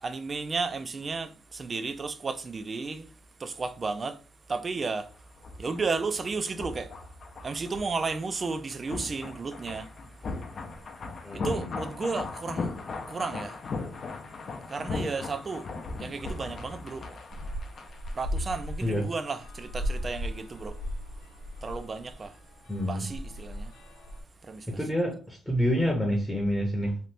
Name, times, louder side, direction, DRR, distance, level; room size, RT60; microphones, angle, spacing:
voice 1, 0.0-3.1 3.4-4.2 4.5-5.1 5.6-6.9 7.4-9.9 11.4-12.7 13.1-13.6 14.7-15.7 16.0-17.0 18.1-20.7 21.6-22.3 22.8-23.7 24.5-24.7, right 4 dB, 35° right, 0.4 m, -33 dB
sound 1, 5.1-18.9 19.1-19.3, left 3 dB, 50° left, 0.5 m, -38 dB
voice 2, 11.2-11.7 18.8-19.0 22.7-23.0 24.7-27.0, equal, 10° left, 0.8 m, -28 dB
sound 2, 17.3-24.2, equal, 85° left, 0.8 m, -37 dB
2.8 x 2.5 x 3.3 m
cardioid pair, 90°, 0 cm